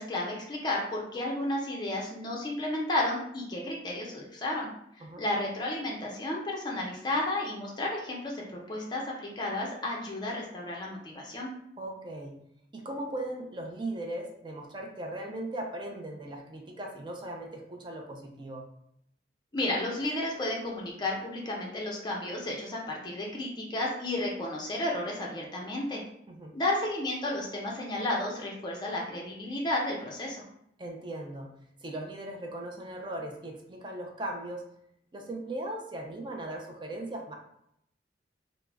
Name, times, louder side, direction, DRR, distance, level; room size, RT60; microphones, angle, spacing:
voice 1, 0.0-4.7 5.2-11.5 19.5-26.0 26.5-30.4, left 1 dB, 25° left, -2 dB, 0.5 m, -32 dB
voice 2, 11.8-12.4 12.7-18.7 26.3-26.5 30.8-31.5 31.8-34.7 35.1-37.4, right 1 dB, 25° right, 1 dB, 0.4 m, -38 dB
2.2 x 2.0 x 3.3 m, 0.74 s
head